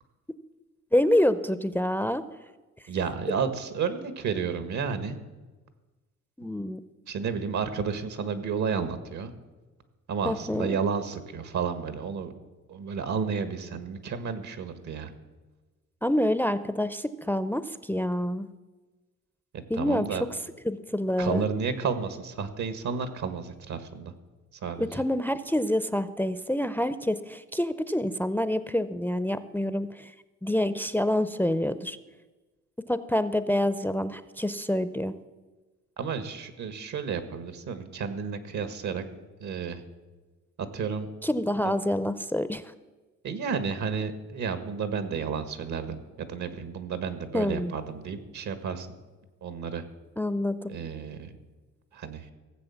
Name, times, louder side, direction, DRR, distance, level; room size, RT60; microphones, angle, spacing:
voice 1, 0.9-2.2 6.4-6.8 10.2-10.8 16.0-18.5 19.7-20.2 20.6-21.5 24.8-30.1 30.4-32.0 32.9-35.1 41.2-42.6 47.3-47.7 50.2-50.8, left 1 dB, 5° left, 14 dB, 0.5 m, -27 dB
voice 2, 2.9-5.2 7.1-9.4 10.1-12.3 12.7-15.1 19.5-20.2 21.2-24.1 24.5-25.0 36.0-39.1 39.4-39.8 40.6-41.1 41.6-41.8 43.2-48.9 49.4-49.8 50.7-51.3 51.9-52.3, right 6 dB, 70° right, 11 dB, 1.6 m, -32 dB
16.5 x 7.7 x 7.1 m, 1.2 s
cardioid pair, 90°, 30 cm